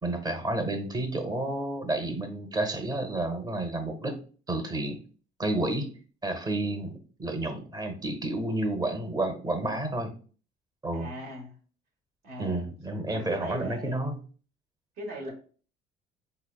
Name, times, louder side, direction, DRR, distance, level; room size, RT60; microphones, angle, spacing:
voice 1, 0.0-4.2 4.5-5.0 5.4-5.9 6.2-10.1 10.8-11.1 12.4-14.2, right 2 dB, 25° right, 6 dB, 0.8 m, -30 dB
voice 2, 10.9-11.5 12.2-12.6 13.1-14.0 15.0-15.3, equal, 65° right, 1 dB, 1.4 m, -39 dB
4.3 x 3.2 x 2.3 m, 0.39 s
cardioid pair, 110°, 17 cm